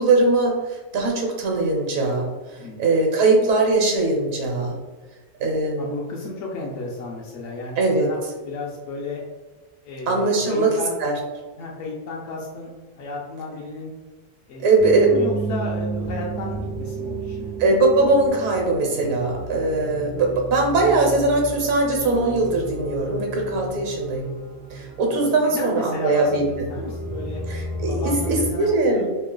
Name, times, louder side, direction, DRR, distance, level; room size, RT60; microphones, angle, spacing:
voice 1, 0.0-2.3 2.8-4.8 5.4-6.0 7.8-8.1 10.1-10.7 11.0-11.2 14.6-15.1 17.6-24.3 24.7-26.7 27.5-29.1, right 3 dB, 70° right, 1 dB, 1.1 m, -21 dB
voice 2, 5.8-8.2 8.4-9.2 9.8-11.0 11.6-13.9 14.5-14.6 15.1-17.5 25.4-26.3 26.7-27.5 27.9-29.1, left 2 dB, 65° left, -4 dB, 0.9 m, -33 dB
sound 1, 14.8-28.5, right 2 dB, 10° left, 0.3 m, -32 dB
3.0 x 2.7 x 3.8 m, 1.3 s
omnidirectional pair, 1.5 m